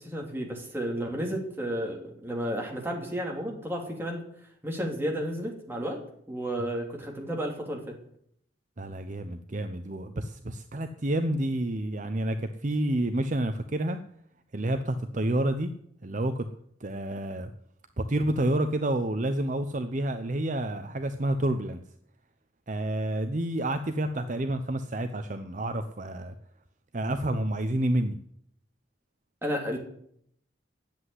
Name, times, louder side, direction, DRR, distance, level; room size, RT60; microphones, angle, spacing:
voice 1, 0.0-4.2 4.6-6.0 6.3-7.9 29.4-29.8, equal, 10° right, 0 dB, 2.8 m, -32 dB
voice 2, 8.8-14.0 14.5-15.7 16.0-16.5 16.8-17.5 18.0-21.8 22.7-26.3 26.9-28.2, right 1 dB, 40° right, 8 dB, 0.7 m, -29 dB
10.5 x 8.0 x 9.7 m, 0.69 s
head